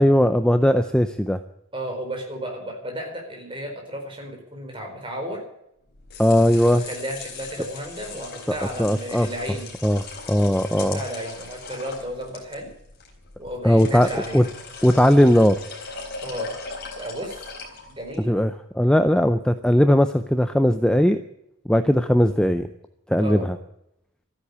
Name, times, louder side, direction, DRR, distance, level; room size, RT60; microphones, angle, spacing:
voice 1, 0.0-1.4 6.2-6.8 8.5-9.3 9.8-11.0 13.6-14.5 14.8-15.6 18.2-21.2 21.7-22.7 23.1-23.6, equal, 5° left, 9 dB, 0.5 m, -19 dB
voice 2, 1.7-5.4 6.6-9.7 10.7-12.7 13.4-14.5 16.2-16.5 17.0-17.4 17.9-18.3 20.6-20.9 23.2-23.5, equal, 25° right, 2 dB, 4.4 m, -33 dB
sound 1, 5.9-18.2, left 4 dB, 45° left, 4.2 m, -39 dB
13.5 x 9.9 x 9.5 m, 0.80 s
head